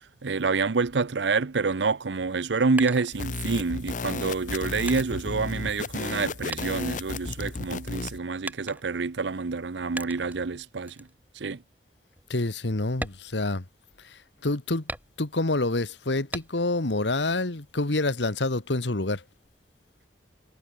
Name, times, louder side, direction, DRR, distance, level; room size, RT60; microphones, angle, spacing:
voice 1, 0.2-10.9 11.4-11.6, right 4 dB, 85° right, 0.7 m, -27 dB
sound 1, 2.8-3.7 4.4-6.2 6.5-7.7 8.4-9.1 10.0-10.4 10.9-11.1 11.6-11.7 12.1-12.3 12.9-14.1 14.9-15.5 16.3-16.9 17.3-18.1, right 2 dB, 10° right, 2.8 m, -40 dB
sound 2, 3.1-8.2, left 3 dB, 45° left, 0.8 m, -34 dB
voice 2, 12.3-13.6 14.1-14.8 15.2-19.2, left 2 dB, 90° left, 1.6 m, -27 dB
head